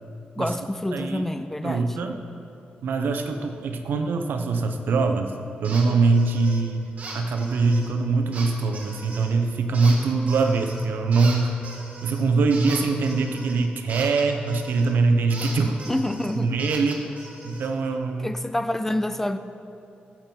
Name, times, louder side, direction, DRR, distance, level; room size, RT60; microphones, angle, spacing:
voice 1, 0.4-2.0 3.9-4.0 15.9-16.7 18.2-19.4, left 1 dB, 10° left, 10 dB, 0.3 m, -28 dB
voice 2, 0.9-1.3 1.6-2.2 2.8-5.3 5.6-6.8 7.1-11.6 12.0-15.8 16.3-17.1 17.4-18.3, right 3 dB, 75° right, 5 dB, 0.8 m, -23 dB
sound 1, 5.6-5.9 6.1-6.6 7.0-7.9 8.3-9.3 9.7-10.9 11.1-14.9 15.3-17.7, right 3 dB, 45° right, 1.6 m, -39 dB
14.0 x 7.5 x 4.5 m, 2.8 s
wide cardioid pair, 150°, 3 cm